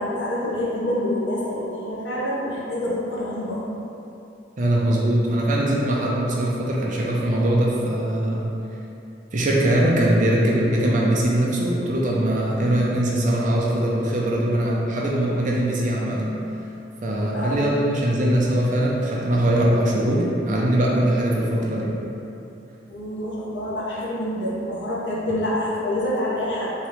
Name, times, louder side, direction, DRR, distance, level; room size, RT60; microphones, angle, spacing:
voice 1, 0.0-3.6 17.3-17.6 22.9-26.7, left 1 dB, 70° left, -6 dB, 0.8 m, -26 dB
voice 2, 4.6-8.5 9.3-16.3 17.0-21.9, right 1 dB, 45° right, -4 dB, 0.5 m, -21 dB
3.6 x 2.9 x 3.4 m, 2.8 s
head